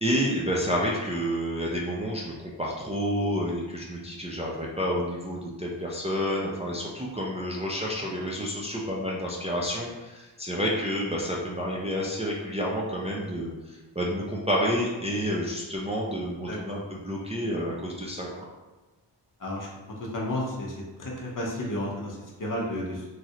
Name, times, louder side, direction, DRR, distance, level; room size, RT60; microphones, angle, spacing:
voice 1, 0.0-18.4, equal, 15° right, -4 dB, 0.4 m, -29 dB
voice 2, 20.0-23.1, left 1 dB, 45° left, -2 dB, 0.7 m, -32 dB
3.1 x 2.4 x 2.8 m, 1.1 s
wide cardioid pair, 80°, 44 cm